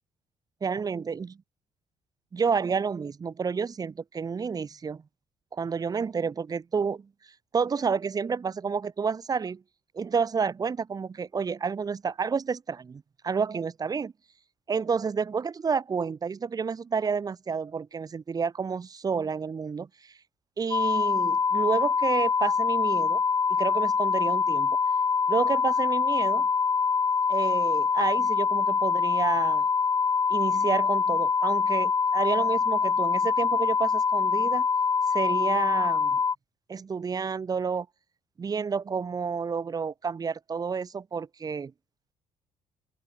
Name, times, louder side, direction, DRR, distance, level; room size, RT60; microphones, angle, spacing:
voice 1, 0.6-1.3 2.3-5.0 5.5-7.1 7.5-9.6 9.9-14.1 14.7-20.1 20.6-23.2 23.6-24.8 25.3-26.5 27.3-29.7 30.3-34.7 35.1-36.2 36.7-37.9 38.4-41.7, right 5 dB, 35° right, 5.9 m, -30 dB
sound 1, 20.7-36.4, left 5 dB, 30° left, 0.6 m, -24 dB
open air
cardioid pair, 95°, 11 cm